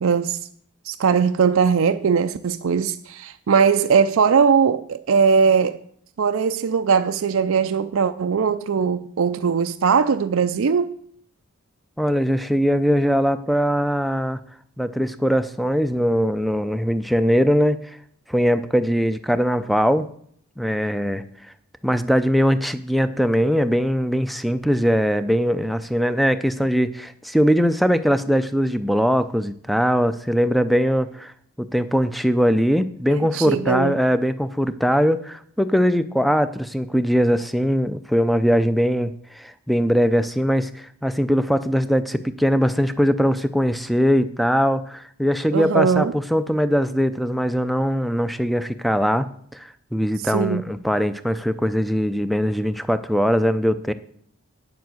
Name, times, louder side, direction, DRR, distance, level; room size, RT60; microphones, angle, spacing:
voice 1, 0.0-0.4 0.8-5.8 6.2-11.0 33.1-34.0 45.5-46.1 50.3-50.6, right 6 dB, 65° right, 0.4 m, -20 dB
voice 2, 12.0-14.4 14.8-18.0 18.3-20.1 20.6-21.2 21.8-31.3 31.6-49.3 49.5-53.9, equal, ahead, 0.4 m, -21 dB
9.2 x 7.2 x 7.7 m
head